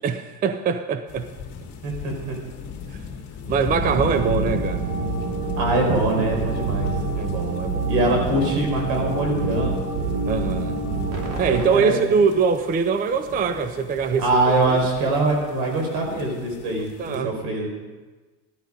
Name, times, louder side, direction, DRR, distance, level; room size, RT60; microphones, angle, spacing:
voice 1, 0.0-1.3 2.9-3.0 3.5-4.9 7.2-7.9 10.3-10.8 11.4-14.8 16.7-17.3, right 5 dB, 20° right, 10 dB, 0.5 m, -23 dB
sound 1, 1.1-17.2, left 6 dB, 40° left, 2.3 m, -38 dB
voice 2, 1.8-2.4 5.6-6.9 7.9-9.7 11.3-12.0 14.2-17.7, right 2 dB, 70° right, 1 dB, 5.1 m, -23 dB
sound 2, 3.7-11.6, right 3 dB, 45° right, 2.9 m, -27 dB
15.0 x 12.0 x 5.2 m, 1.2 s
cardioid pair, 150°, 43 cm